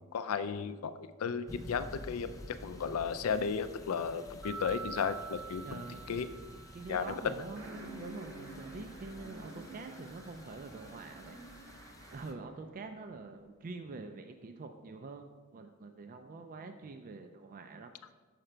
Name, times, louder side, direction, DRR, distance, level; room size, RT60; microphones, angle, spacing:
voice 1, 0.1-5.8 6.1-6.3 6.9-7.2, left 6 dB, 80° left, 12 dB, 0.4 m, -34 dB
sound 1, 1.5-12.3, left 1 dB, 15° left, 0.5 m, -51 dB
sound 2, 4.4-7.2, right 4 dB, 85° right, 1.2 m, -45 dB
voice 2, 5.6-6.2 6.7-18.1, right 3 dB, 40° right, 6 dB, 0.4 m, -46 dB
sound 3, 7.6-12.5, right 2 dB, 65° right, 1.0 m, -49 dB
6.6 x 4.9 x 4.4 m, 1.3 s
head